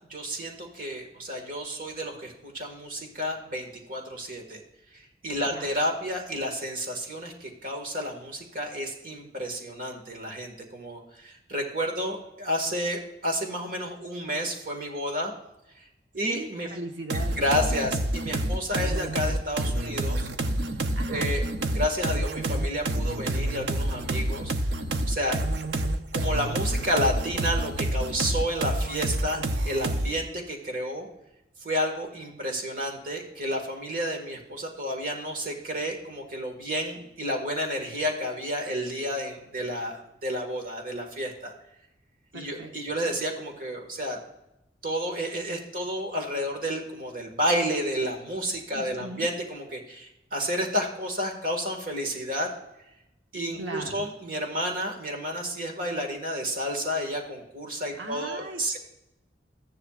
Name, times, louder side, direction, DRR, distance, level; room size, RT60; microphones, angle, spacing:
voice 1, 0.1-4.6 4.9-15.3 15.8-15.9 16.1-16.7 17.4-20.3 21.1-21.4 21.7-24.5 25.1-25.4 25.7-25.8 26.1-31.1 31.6-41.5 42.3-44.2 44.8-52.5 53.3-58.8, equal, 50° right, 3 dB, 1.8 m, -31 dB
voice 2, 16.2-17.4 20.9-21.3 42.3-42.7 48.7-49.3 53.6-54.1 58.0-58.8, right 1 dB, 90° right, 2 dB, 1.1 m, -38 dB
sound 1, 17.1-30.2, right 1 dB, 70° right, 0.7 m, -28 dB
14.0 x 10.5 x 2.5 m, 0.88 s
head